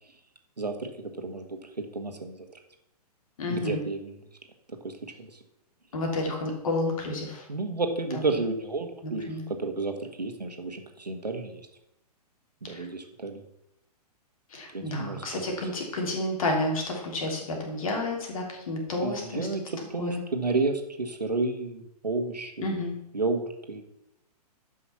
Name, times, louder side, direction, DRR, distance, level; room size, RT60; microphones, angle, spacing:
voice 1, 0.6-2.5 3.5-4.2 4.7-5.4 7.5-11.7 12.6-13.4 14.7-15.6 19.0-22.7 23.1-23.8, right 3 dB, 80° right, 5 dB, 1.6 m, -31 dB
voice 2, 3.4-3.8 5.9-7.5 8.1-8.3 9.0-9.4 12.7-12.9 14.5-19.5 20.0-20.2 22.6-22.9, left 2 dB, 55° left, 1 dB, 3.1 m, -30 dB
11.5 x 5.6 x 5.7 m, 0.82 s
figure-of-eight pair, 115°, 21 cm